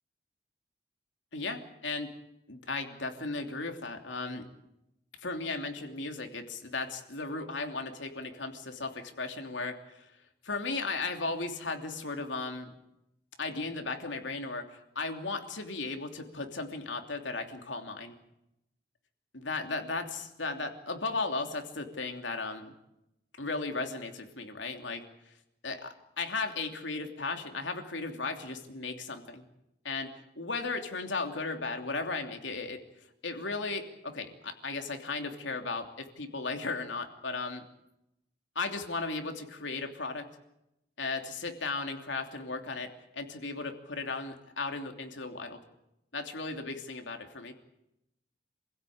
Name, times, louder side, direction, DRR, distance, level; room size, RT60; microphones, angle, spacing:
voice 1, 1.3-2.1 2.5-4.4 5.2-10.1 10.4-12.7 13.4-18.1 19.3-22.7 23.4-25.0 25.6-29.5 29.8-32.8 33.2-37.6 38.5-40.3 41.0-45.6 46.1-47.5, left 3 dB, 80° left, 5 dB, 3.0 m, -36 dB
27.0 x 16.5 x 8.7 m, 0.87 s
head